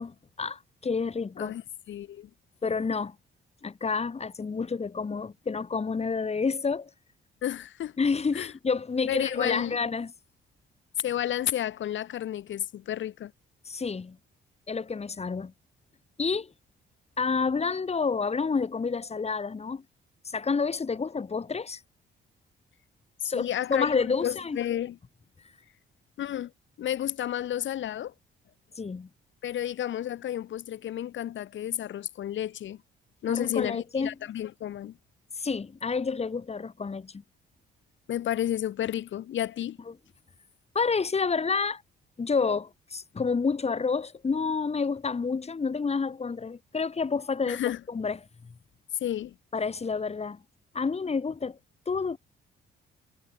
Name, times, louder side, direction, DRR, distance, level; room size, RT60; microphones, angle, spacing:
voice 1, 0.0-1.6 2.6-3.2 3.6-6.9 8.0-10.1 13.6-14.2 14.7-15.5 16.2-16.5 17.2-19.8 20.2-21.8 23.2-24.6 28.8-29.1 33.3-34.1 35.4-37.2 40.7-41.8 42.2-47.6 47.9-48.2 48.4-48.5 49.5-50.4 50.7-51.6 51.9-52.2, left 5 dB, 30° left, 4.1 m, -29 dB
voice 2, 1.9-2.3 7.4-7.9 8.3-8.5 9.1-9.8 11.0-13.3 23.2-25.0 26.2-26.5 26.8-28.1 29.4-32.8 33.2-35.0 38.1-39.8 47.5-47.8 49.0-49.3, left 11 dB, 70° left, 4.6 m, -31 dB
cardioid pair, 90°, 20 cm